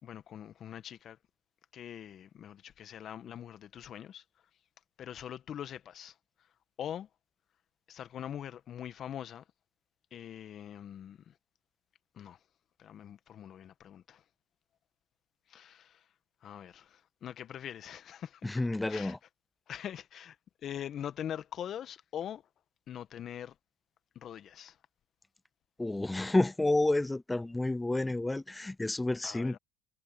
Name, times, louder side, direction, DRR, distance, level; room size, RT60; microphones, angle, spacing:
voice 1, 0.0-1.2 1.7-4.2 5.0-6.1 6.8-7.1 7.9-9.4 10.1-11.3 12.1-12.4 12.8-14.2 15.5-16.0 16.4-18.6 18.9-19.2 19.7-20.4 20.6-22.4 22.9-23.5 24.1-24.8 29.2-29.6, left 10 dB, 50° left, 1.6 m, -43 dB
voice 2, 18.4-19.2 25.8-29.6, left 2 dB, 10° left, 0.5 m, -30 dB
hypercardioid pair, 75°, 0 cm